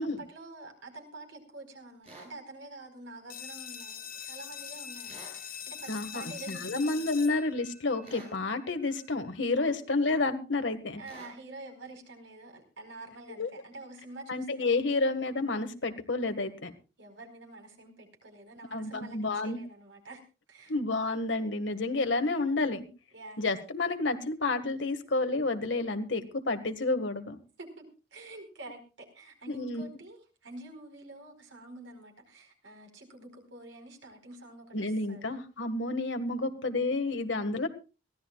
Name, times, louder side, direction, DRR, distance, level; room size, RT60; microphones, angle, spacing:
voice 1, 0.2-7.3 9.6-9.8 11.0-14.9 17.0-19.2 19.4-20.2 20.5-20.7 23.1-23.5 27.6-34.8 35.1-35.4, right 2 dB, 85° right, 3 dB, 4.5 m, -48 dB
sound 1, 2.0-2.3 5.0-5.4 8.0-8.4 11.0-11.4, right 2 dB, 35° right, 7.7 m, -49 dB
sound 2, 3.3-8.7, left 8 dB, 50° left, 1.4 m, -43 dB
voice 2, 5.9-11.0 13.4-13.5 14.3-16.7 18.7-19.6 20.7-22.9 23.4-27.4 29.5-29.9 34.7-37.7, left 3 dB, 80° left, 7 dB, 1.8 m, -30 dB
22.5 x 16.0 x 2.4 m, 0.32 s
head